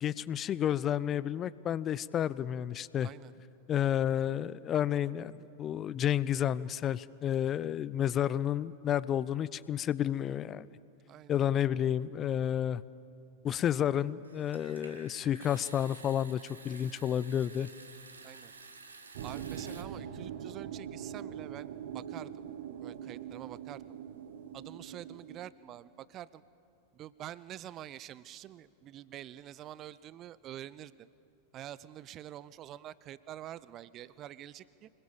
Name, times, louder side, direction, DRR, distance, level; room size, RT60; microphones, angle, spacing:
voice 1, 0.0-3.1 3.7-10.7 11.3-12.8 13.4-17.7, left 10 dB, 30° left, 19 dB, 0.5 m, -31 dB
voice 2, 3.0-3.3 11.1-11.4 18.2-18.5 19.2-22.4 22.8-23.8 24.5-26.4 26.9-31.1 31.5-34.9, right 12 dB, 35° right, 19 dB, 0.6 m, -46 dB
Water tap faucet / Sink (filling or washing) / Trickle dribble, 14.2-19.8, right 3 dB, 75° right, 1.7 m, -52 dB
sound 1, 19.1-25.5, right 9 dB, 55° right, 1.2 m, -42 dB
25.5 x 20.5 x 7.3 m, 2.7 s
figure-of-eight pair, 90°, 0 cm